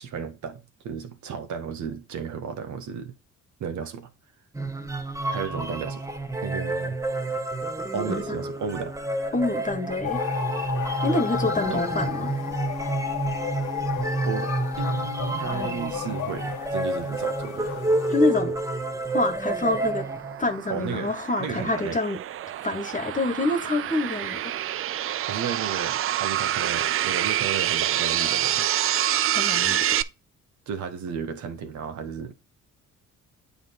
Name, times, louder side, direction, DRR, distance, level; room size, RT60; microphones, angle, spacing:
voice 1, 0.0-3.1 3.6-4.1 5.3-6.1 6.4-7.0 7.9-8.9 11.7-11.8 14.2-14.5 14.8-17.7 20.7-21.1 21.4-22.0 25.3-28.7 30.7-32.3, right 7 dB, 70° right, 1.3 m, -33 dB
sound 1, 4.5-20.6, right 2 dB, 10° right, 1.1 m, -29 dB
voice 2, 9.3-10.2 11.0-12.3 18.1-18.6 19.1-20.0 20.4-22.2 22.6-24.5 29.3-29.8, left 2 dB, 25° left, 1.5 m, -26 dB
sound 2, 10.0-18.2, left 9 dB, 80° left, 1.2 m, -33 dB
sound 3, 19.2-30.0, right 12 dB, 45° right, 0.4 m, -27 dB
8.7 x 3.5 x 4.1 m
cardioid pair, 90°, 30 cm